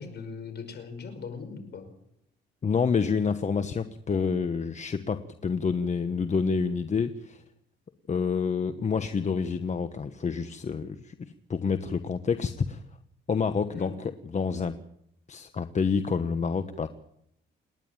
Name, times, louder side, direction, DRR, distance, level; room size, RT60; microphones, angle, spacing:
voice 1, 0.0-1.9 13.7-14.0, left 5 dB, 55° left, 9 dB, 5.3 m, -40 dB
voice 2, 2.6-7.4 8.1-12.8 13.3-14.8 15.3-16.9, left 5 dB, 35° left, 10 dB, 1.2 m, -28 dB
28.5 x 11.0 x 9.1 m, 0.75 s
cardioid pair, 90°, 20 cm